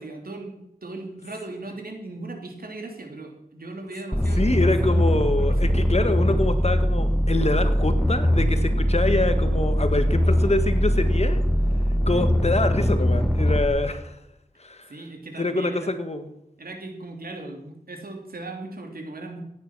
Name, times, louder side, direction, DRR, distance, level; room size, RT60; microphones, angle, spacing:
voice 1, 0.0-5.0 5.4-6.0 14.9-15.9 16.6-19.4, right 2 dB, 85° right, 3 dB, 3.0 m, -38 dB
sound 1, 4.1-13.7, equal, 5° left, 1.7 m, -21 dB
voice 2, 4.4-11.4 12.1-14.2 14.6-14.9 15.4-16.3, left 2 dB, 45° left, 9 dB, 1.6 m, -25 dB
16.0 x 9.7 x 6.2 m, 0.81 s
wide cardioid pair, 75°, 15 cm